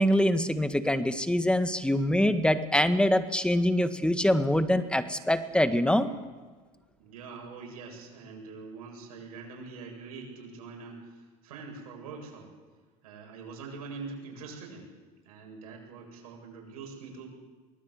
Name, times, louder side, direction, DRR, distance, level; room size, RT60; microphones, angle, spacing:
voice 1, 0.0-6.1, left 1 dB, 5° left, 9 dB, 1.7 m, -24 dB
voice 2, 7.0-12.5 13.0-14.9 15.2-17.3, right 4 dB, 85° right, 1 dB, 7.9 m, -44 dB
23.5 x 19.5 x 8.3 m, 1.3 s
supercardioid pair, 95°, 19 cm